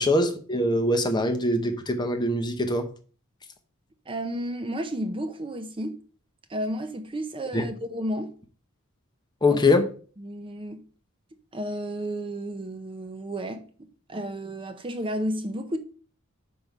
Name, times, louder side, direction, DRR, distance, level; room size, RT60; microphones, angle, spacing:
voice 1, 0.0-2.9 7.5-7.6 9.4-9.9, left 1 dB, 20° left, 0.8 m, -23 dB
voice 2, 4.1-6.0 6.5-8.3 9.5-9.6 10.2-10.8 11.5-15.8, right 1 dB, 25° right, 0.5 m, -32 dB
5.3 x 4.6 x 5.3 m
head